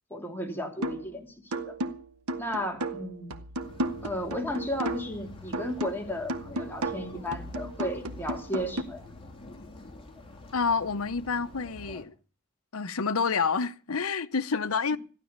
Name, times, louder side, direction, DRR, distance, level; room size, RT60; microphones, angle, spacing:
voice 1, 0.1-1.8 2.4-3.4 4.0-9.1 14.9-15.0, left 1 dB, 10° left, 2.9 m, -34 dB
sound 1, 0.8-1.1 1.5-5.2 5.5-8.8, right 1 dB, 85° right, 1.3 m, -34 dB
sound 2, 3.6-12.0, left 2 dB, 25° left, 3.6 m, -47 dB
voice 2, 10.5-12.1 12.7-15.0, left 5 dB, 70° left, 0.9 m, -28 dB
15.0 x 11.5 x 6.6 m
head